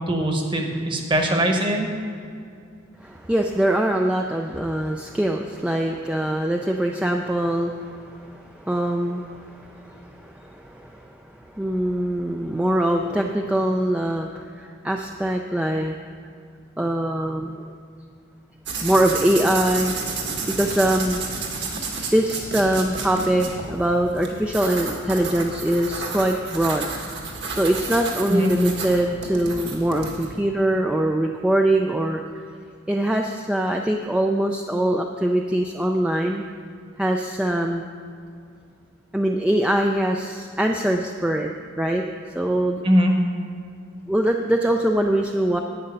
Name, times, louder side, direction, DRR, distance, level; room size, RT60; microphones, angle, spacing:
voice 1, 0.1-1.9 28.3-28.5 42.8-43.1, equal, 25° right, 3 dB, 1.2 m, -21 dB
voice 2, 3.0-16.0 16.8-17.8 18.8-20.0 20.5-21.2 22.1-26.9 27.5-32.2 32.9-36.4 37.0-37.9 39.1-41.5 41.8-42.0 42.3-42.8 44.1-45.6, right 1 dB, 5° right, 2 dB, 0.4 m, -23 dB
sound 1, 18.7-30.3, right 4 dB, 55° right, 1.7 m, -31 dB
11.5 x 8.9 x 5.5 m, 2.4 s
head